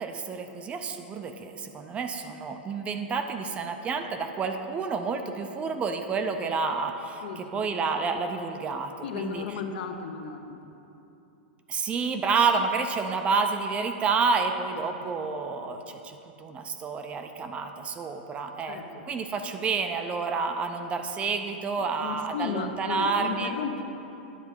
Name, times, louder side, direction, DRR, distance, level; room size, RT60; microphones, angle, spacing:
voice 1, 0.0-7.2 7.5-9.4 11.7-18.8 19.1-23.5, right 4 dB, 20° right, 6 dB, 0.5 m, -29 dB
voice 2, 7.2-7.6 9.0-10.6 15.0-15.3 18.7-19.1 21.8-23.8, left 6 dB, 70° left, 5 dB, 0.8 m, -35 dB
9.7 x 4.1 x 7.2 m, 2.9 s
supercardioid pair, 145°, 6 cm